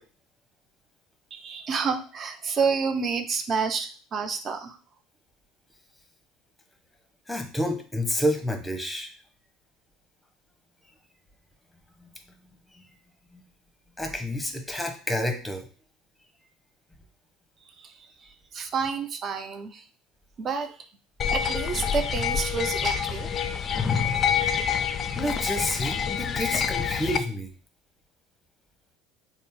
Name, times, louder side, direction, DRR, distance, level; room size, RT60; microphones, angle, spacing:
voice 1, 1.3-4.8 18.5-19.8 20.4-20.7 21.3-23.3, right 5 dB, 40° right, 8 dB, 0.5 m, -29 dB
voice 2, 7.3-9.1 12.0-12.1 12.7-12.8 13.3-13.4 14.0-15.7 25.2-27.5, equal, 5° left, 4 dB, 0.8 m, -29 dB
sound 1, 21.2-27.2, left 7 dB, 35° left, 0.3 m, -27 dB
3.9 x 2.0 x 3.6 m, 0.38 s
figure-of-eight pair, 65°, 0 cm